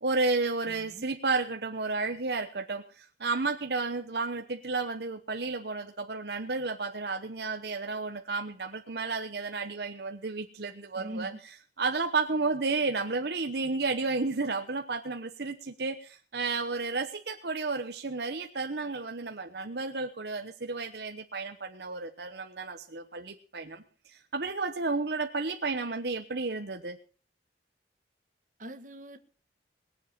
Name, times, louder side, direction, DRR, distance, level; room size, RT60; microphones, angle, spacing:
voice 1, 0.0-11.3 11.8-27.0, right 3 dB, 70° right, 1.0 m, -32 dB
voice 2, 0.7-1.1 10.9-11.4 28.6-29.2, right 1 dB, 45° right, 1.5 m, -42 dB
21.0 x 7.6 x 6.1 m
head